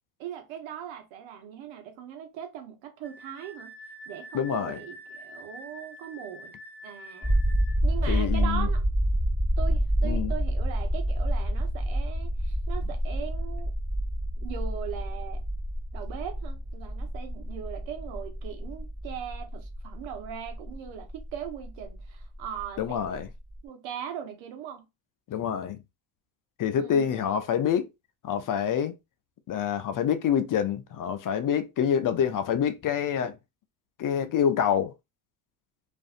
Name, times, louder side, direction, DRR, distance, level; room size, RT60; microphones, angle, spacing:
voice 1, 0.2-3.7 4.1-6.5 6.8-7.4 7.8-8.8 9.6-13.7 14.4-15.4 15.9-23.2 23.6-24.8 26.8-27.3, right 9 dB, 75° right, 1.0 m, -40 dB
Wind instrument woodwind instrument, 3.0-7.8, right 1 dB, 5° left, 0.7 m, -46 dB
voice 2, 4.3-4.8 8.1-8.7 10.0-10.3 22.8-23.3 25.3-25.8 26.6-27.9 28.2-28.9 29.5-33.4 34.0-34.9, left 8 dB, 45° left, 0.6 m, -26 dB
sound 1, 7.2-23.3 23.6-23.7, equal, 15° right, 1.1 m, -28 dB
2.5 x 2.5 x 2.4 m
supercardioid pair, 70°, 47 cm